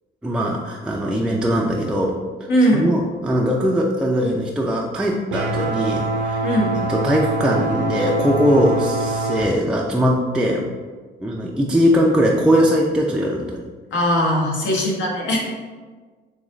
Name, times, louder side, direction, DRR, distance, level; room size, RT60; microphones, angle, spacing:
voice 1, 0.2-2.2 2.7-6.4 6.9-10.7 11.2-13.6, equal, 5° right, -3 dB, 0.4 m, -20 dB
voice 2, 2.5-2.9 6.4-6.8 13.9-15.4, equal, 70° left, -2 dB, 1.0 m, -19 dB
sound 1, 5.3-9.4, right 2 dB, 70° right, 0.6 m, -24 dB
3.6 x 3.1 x 3.1 m, 1.4 s
cardioid pair, 90°, 20 cm